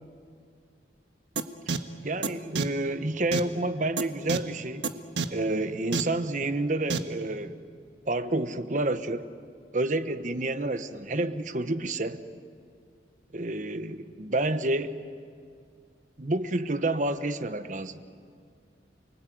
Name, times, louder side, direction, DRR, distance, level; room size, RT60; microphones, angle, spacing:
sound 1, 1.4-1.5 1.7-1.8 2.2-2.3 2.6-2.7 3.3-3.4 4.0-4.1 4.3-4.4 4.8-4.9 5.2-5.3 5.9-6.0 6.9-7.0, right 4 dB, 90° right, 1.4 m, -26 dB
voice 1, 2.0-4.9 5.3-7.6 8.1-9.3 9.7-12.2 13.3-15.0 16.2-18.0, right 2 dB, 45° right, 11 dB, 1.1 m, -29 dB
29.5 x 21.0 x 9.3 m, 2.3 s
head